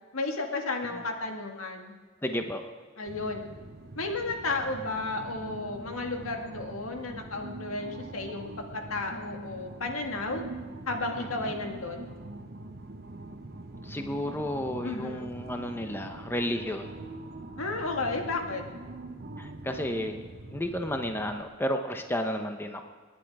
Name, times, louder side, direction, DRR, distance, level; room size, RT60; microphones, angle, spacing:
voice 1, 0.1-1.9 3.0-3.5 4.0-10.4 10.9-12.1 14.8-15.3 17.6-18.6, left 3 dB, 90° left, 3 dB, 2.0 m, -33 dB
voice 2, 2.2-2.6 11.2-11.5 13.8-16.9 19.4-20.2 20.5-22.8, equal, 10° left, 5 dB, 0.9 m, -32 dB
sound 1, 3.1-21.4, right 2 dB, 50° right, 1.0 m, -43 dB
28.0 x 10.5 x 4.8 m, 1.5 s
head